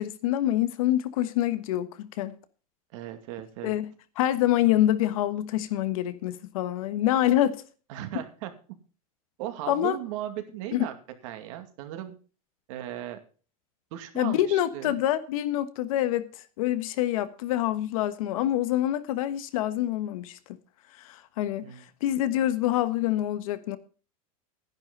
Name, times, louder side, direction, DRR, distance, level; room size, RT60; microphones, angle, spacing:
voice 1, 0.0-2.4 3.6-7.6 9.7-10.0 10.7-10.8 14.1-16.3 16.6-20.4 21.0-23.8, left 13 dB, 70° left, 1.3 m, -26 dB
voice 2, 2.9-3.7 7.9-8.5 9.4-10.9 11.2-12.2 12.7-13.2 13.9-15.0 21.6-21.8, right 12 dB, 65° right, 2.3 m, -37 dB
10.5 x 10.5 x 5.4 m
supercardioid pair, 140°, 18 cm